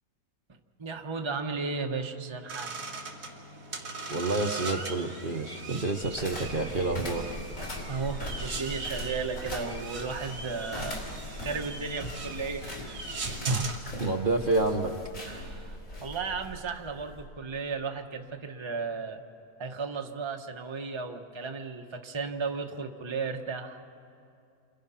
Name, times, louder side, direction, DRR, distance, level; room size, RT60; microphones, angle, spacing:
voice 1, 0.8-2.9 7.9-11.0 11.4-12.9 15.2-19.2 19.6-23.8, right 4 dB, 20° right, 3 dB, 1.1 m, -35 dB
sound 1, 2.5-13.8, right 3 dB, 90° right, 2.6 m, -40 dB
voice 2, 4.1-7.4 13.5-13.7 14.0-14.9, right 3 dB, 40° right, 2 dB, 1.2 m, -28 dB
sound 2, 6.0-17.3, equal, 60° left, 4.5 m, -40 dB
29.0 x 26.5 x 5.7 m, 2.4 s
omnidirectional pair, 1.6 m